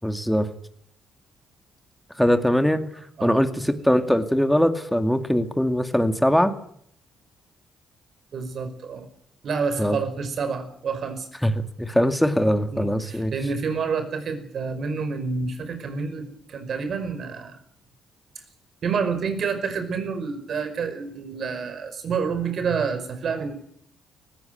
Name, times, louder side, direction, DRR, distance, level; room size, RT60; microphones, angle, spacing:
voice 1, 0.0-0.5 2.2-2.8 3.2-6.5 9.8-10.0 11.4-13.3, equal, 5° left, 8 dB, 2.3 m, -21 dB
voice 2, 8.3-9.1 9.4-11.3 12.7-17.6 18.8-23.5, right 5 dB, 55° right, 9 dB, 5.3 m, -28 dB
19.0 x 16.5 x 9.4 m, 0.67 s
cardioid pair, 90°, 0 cm